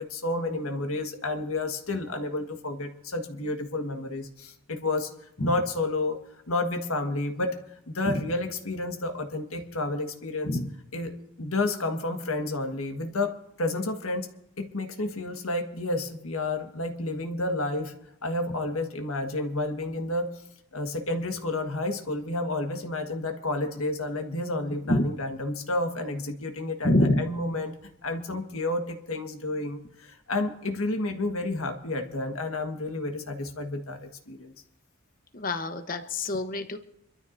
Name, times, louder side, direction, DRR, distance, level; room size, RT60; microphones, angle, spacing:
voice 1, 0.0-6.2 6.5-7.5 7.9-10.6 10.9-13.3 13.6-14.3 14.6-17.9 18.2-20.3 20.7-26.9 27.2-27.7 28.0-34.5, left 2 dB, 70° left, 4 dB, 1.5 m, -30 dB
voice 2, 26.8-27.3 35.3-36.8, left 1 dB, 40° left, 8 dB, 1.0 m, -26 dB
26.0 x 13.0 x 2.6 m, 0.81 s
head